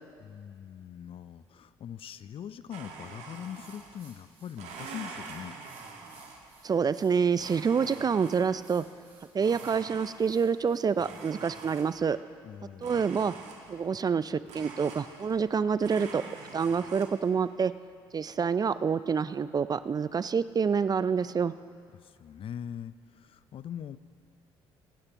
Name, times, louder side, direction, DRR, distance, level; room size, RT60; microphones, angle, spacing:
voice 1, 0.2-5.5 12.4-13.0 21.9-24.0, left 9 dB, 45° left, 14 dB, 0.5 m, -42 dB
Domestic sounds home sounds, 2.7-4.1 4.5-6.6 7.4-8.7 9.4-10.5 11.0-12.2 12.8-13.9 14.5-15.5 15.8-17.1, right 4 dB, 60° right, 1.6 m, -45 dB
sound 1, 3.3-12.0, right 4 dB, 80° right, 2.2 m, -60 dB
voice 2, 6.6-8.8 9.3-12.2 12.8-13.3 13.7-16.2 16.5-17.7 18.1-21.5, right 6 dB, 30° right, 15 dB, 0.4 m, -27 dB
24.5 x 9.8 x 3.0 m, 2.2 s
hypercardioid pair, 55°, 13 cm